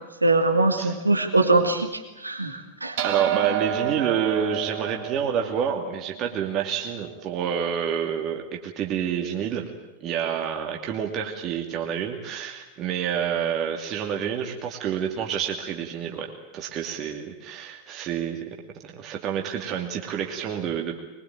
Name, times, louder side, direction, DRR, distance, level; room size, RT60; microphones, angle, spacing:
voice 1, 0.2-1.9 2.2-2.9, right 2 dB, 80° right, 6 dB, 2.1 m, -21 dB
voice 2, 3.0-9.6 10.0-18.4 18.8-21.0, right 8 dB, 35° right, 2 dB, 2.5 m, -28 dB
sound 1, 3.0-7.6, right 11 dB, 55° right, 2.8 m, -30 dB
23.0 x 21.5 x 8.9 m, 1.0 s
figure-of-eight pair, 90°, 0 cm